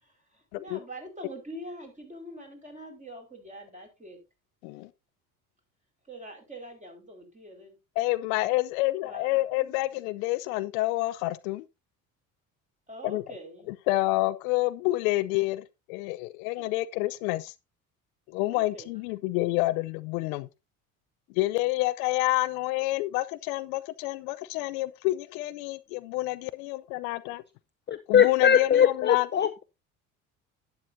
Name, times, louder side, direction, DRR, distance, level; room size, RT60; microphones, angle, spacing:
voice 1, 0.0-4.2 6.1-7.7 9.0-9.7 12.9-13.7 16.6-16.7 18.5-18.9, right 1 dB, 15° right, 4.9 m, -44 dB
voice 2, 8.0-11.6 13.0-13.2 13.7-17.5 18.3-20.5 21.4-27.4 28.1-29.3, left 19 dB, 70° left, 0.6 m, -28 dB
voice 3, 27.9-29.6, left 8 dB, 25° left, 0.6 m, -21 dB
11.5 x 9.7 x 2.7 m
hypercardioid pair, 65°, 44 cm